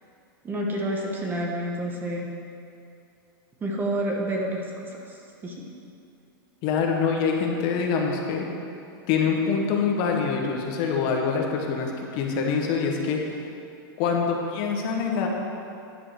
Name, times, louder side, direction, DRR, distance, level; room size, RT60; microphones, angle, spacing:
voice 1, 0.4-2.3 3.6-5.2 5.4-5.6, right 1 dB, 15° right, -1 dB, 1.0 m, -29 dB
voice 2, 6.6-8.4 9.1-13.2 14.0-15.3, left 5 dB, 40° left, 1 dB, 1.1 m, -25 dB
10.5 x 4.8 x 6.4 m, 2.6 s
supercardioid pair, 145°, 12 cm